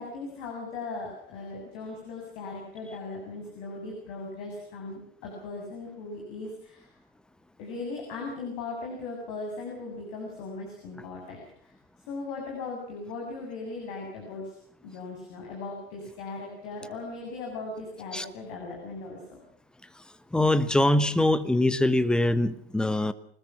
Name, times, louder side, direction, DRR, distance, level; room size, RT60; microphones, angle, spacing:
voice 1, 0.0-6.9 7.6-11.7 12.1-14.6 14.8-19.4, left 3 dB, 40° left, 0 dB, 7.6 m, -38 dB
voice 2, 20.3-23.1, left 1 dB, 5° left, 14 dB, 1.1 m, -23 dB
25.5 x 20.5 x 6.1 m, 0.63 s
figure-of-eight pair, 105°, 32 cm